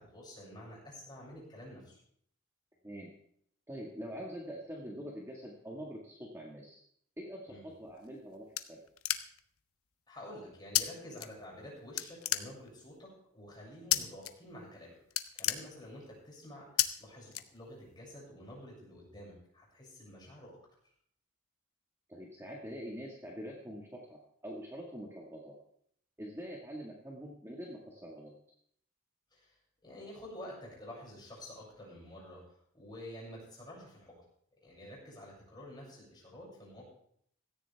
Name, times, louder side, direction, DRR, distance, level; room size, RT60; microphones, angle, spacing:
voice 1, 0.0-2.0 7.5-7.6 10.1-14.9 15.3-20.5 29.3-29.6 29.8-32.4 32.7-34.1 34.6-36.9, left 1 dB, 20° left, -5 dB, 6.8 m, -49 dB
voice 2, 3.7-6.8 7.2-8.8 22.1-25.6 26.2-28.3, equal, 15° right, -2 dB, 1.8 m, -44 dB
sound 1, 7.9-9.6 10.7-10.8 11.2-11.7 12.0-12.9 13.9-14.3 14.6-14.8 15.0-16.2 16.8-16.9 17.3-18.0, left 13 dB, 85° left, 0.8 m, -32 dB
16.5 x 14.0 x 3.5 m, 0.67 s
head